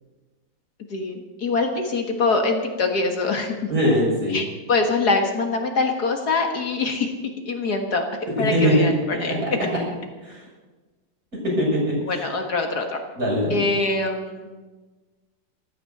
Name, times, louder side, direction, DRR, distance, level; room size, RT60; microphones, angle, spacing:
voice 1, 0.9-3.6 4.3-7.1 7.5-8.1 8.4-8.9 9.2-9.3 12.1-13.0 13.5-14.5, left 3 dB, 55° left, 3 dB, 2.0 m, -24 dB
voice 2, 3.7-4.4 8.5-8.9 9.3-9.5 10.2-10.4 11.5-12.2 13.2-13.6, equal, 45° right, -5 dB, 7.4 m, -21 dB
15.0 x 13.5 x 6.6 m, 1.3 s
omnidirectional pair, 2.0 m